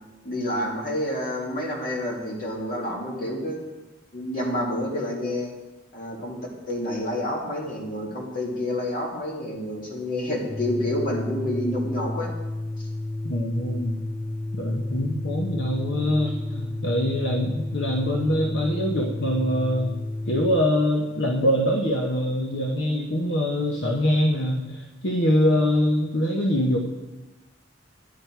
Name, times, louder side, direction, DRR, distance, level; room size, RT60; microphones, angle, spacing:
voice 1, 0.2-3.6 4.1-5.5 5.9-6.4 6.7-12.3, left 1 dB, 50° left, -2 dB, 2.4 m, -28 dB
Organ, 10.4-20.7, left 2 dB, 30° left, 0.4 m, -32 dB
voice 2, 13.2-14.0 14.5-20.0 20.3-26.8, equal, 70° left, 0 dB, 1.0 m, -24 dB
10.5 x 9.8 x 4.6 m, 1.1 s
head